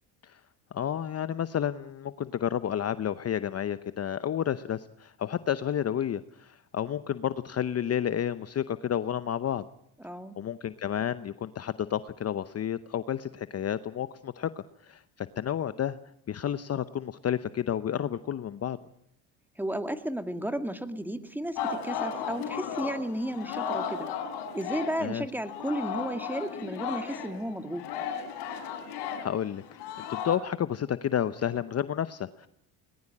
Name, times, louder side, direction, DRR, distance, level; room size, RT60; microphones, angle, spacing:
voice 1, 0.7-9.6 10.4-16.0 16.3-18.8 25.0-25.3 28.7-28.9 29.2-29.8 30.1-32.5, left 9 dB, 35° left, 13 dB, 0.8 m, -31 dB
voice 2, 10.0-10.4 19.6-24.1 24.5-27.8, right 1 dB, 5° right, 8 dB, 2.0 m, -33 dB
Singing, 21.6-25.2 25.4-30.4, left 7 dB, 65° left, 4.6 m, -35 dB
20.5 x 20.0 x 8.7 m, 0.73 s
supercardioid pair, 85°, 43 cm